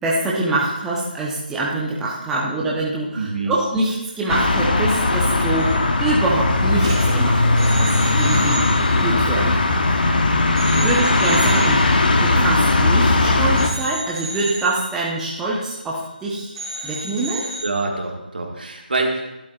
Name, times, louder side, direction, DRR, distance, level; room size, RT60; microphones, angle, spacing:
voice 1, 0.0-8.6 9.0-9.6 9.9-10.1 10.7-11.8 12.2-16.5 16.8-17.5, right 2 dB, 5° right, -6 dB, 1.0 m, -24 dB
voice 2, 3.1-3.5 10.7-11.0 17.6-19.2, right 3 dB, 65° right, 1 dB, 1.9 m, -25 dB
sound 1, 4.3-13.7, left 2 dB, 60° left, 1.2 m, -18 dB
sound 2, 5.4-5.8 6.1-6.3 6.7-10.1 10.6-13.2 13.6-16.2 16.5-17.6, right 2 dB, 30° right, 2.5 m, -34 dB
12.0 x 11.5 x 2.5 m, 0.94 s
figure-of-eight pair, 155°, 5 cm